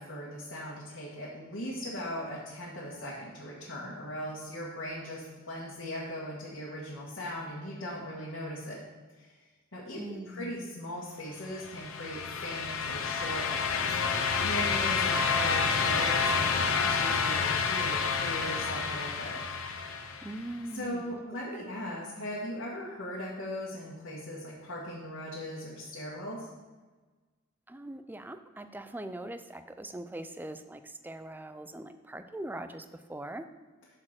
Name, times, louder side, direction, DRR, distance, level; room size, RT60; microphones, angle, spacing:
voice 1, 0.0-8.8 9.2-9.3 9.7-19.4 20.7-26.5, equal, 65° left, -6 dB, 1.7 m, -39 dB
voice 2, 9.9-10.6 20.2-21.2 21.5-21.7 27.7-33.5, right 1 dB, 10° right, 9 dB, 0.4 m, -41 dB
sound 1, 11.5-20.4, left 5 dB, 80° left, 0.7 m, -29 dB
6.5 x 6.3 x 5.9 m, 1.3 s
head